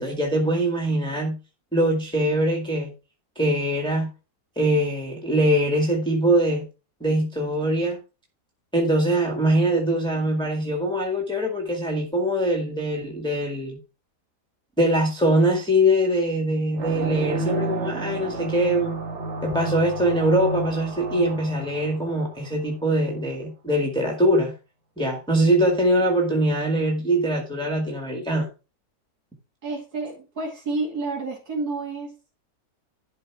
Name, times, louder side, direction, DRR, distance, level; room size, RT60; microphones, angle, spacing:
voice 1, 0.0-1.4 1.7-2.9 3.4-4.1 4.6-6.7 7.0-8.0 8.7-13.8 14.8-19.0 19.4-24.5 25.0-28.5, right 1 dB, 5° left, 1.9 m, -22 dB
sound 1, 16.7-22.9, right 3 dB, 45° right, 1.5 m, -32 dB
voice 2, 29.6-32.3, right 3 dB, 65° right, 3.0 m, -30 dB
12.0 x 4.6 x 4.7 m
omnidirectional pair, 1.8 m